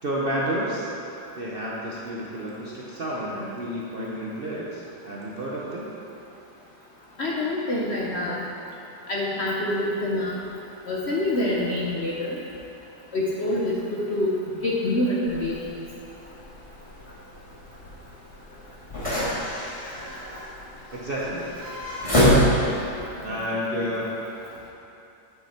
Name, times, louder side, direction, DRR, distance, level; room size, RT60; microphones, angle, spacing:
voice 1, 0.0-0.9 1.3-5.9 20.9-21.5 23.2-24.2, equal, 45° right, -6 dB, 0.7 m, -30 dB
voice 2, 7.2-8.4 9.1-10.4 10.9-12.4 13.1-14.4 14.6-15.5, left 1 dB, 50° left, -4 dB, 0.8 m, -26 dB
sound 1, 15.2-23.0, equal, 20° left, 2.0 m, -27 dB
8.2 x 6.6 x 4.3 m, 2.8 s
omnidirectional pair, 1.9 m